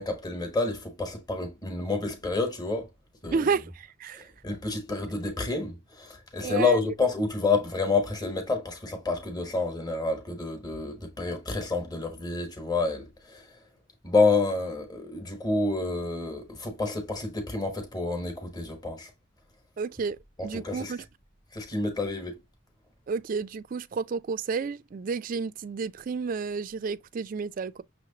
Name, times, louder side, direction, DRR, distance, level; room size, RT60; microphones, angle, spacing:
voice 1, 0.0-2.9 3.2-3.5 4.4-13.5 14.0-19.1 20.4-20.9 21.5-22.3, left 3 dB, 20° left, 1.1 m, -28 dB
voice 2, 3.3-4.3 6.4-6.8 19.8-20.2 20.4-21.0 23.1-27.8, right 5 dB, 40° right, 0.3 m, -31 dB
6.3 x 3.0 x 2.8 m
head